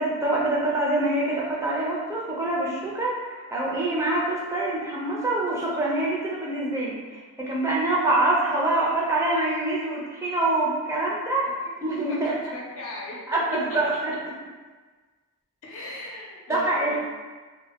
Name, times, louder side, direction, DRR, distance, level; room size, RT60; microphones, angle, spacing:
voice 1, 0.0-11.5 11.8-12.3 13.3-14.1 16.5-17.0, right 2 dB, 15° right, -5 dB, 0.4 m, -25 dB
voice 2, 11.4-13.2 15.6-17.0, left 2 dB, 70° left, -3 dB, 0.6 m, -39 dB
2.1 x 2.1 x 3.3 m, 1.4 s
head